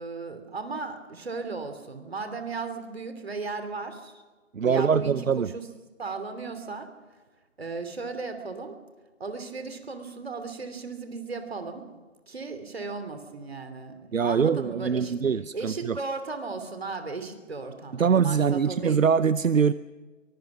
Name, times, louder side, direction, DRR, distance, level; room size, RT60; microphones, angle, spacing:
voice 1, 0.0-4.2 4.6-5.6 6.0-6.9 7.6-8.8 9.2-11.8 12.3-15.1 15.5-19.0, right 4 dB, 50° right, 8 dB, 3.0 m, -36 dB
voice 2, 4.5-5.5 14.1-16.0 18.0-19.7, right 6 dB, 75° right, 16 dB, 0.7 m, -23 dB
23.5 x 21.5 x 6.1 m, 1.3 s
figure-of-eight pair, 170°, 39 cm